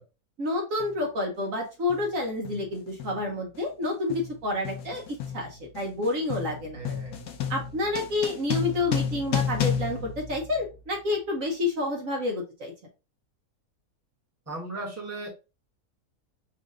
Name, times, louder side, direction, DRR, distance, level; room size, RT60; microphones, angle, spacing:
voice 1, 0.4-6.8 7.5-12.7, left 2 dB, 60° right, 1 dB, 1.3 m, -29 dB
sound 1, 0.8-1.0 1.9-2.2 2.4-11.0, left 8 dB, 75° left, 1.3 m, -32 dB
voice 2, 6.7-7.2 14.5-15.3, right 2 dB, 10° right, -2 dB, 1.2 m, -37 dB
4.2 x 2.5 x 3.7 m, 0.29 s
omnidirectional pair, 1.6 m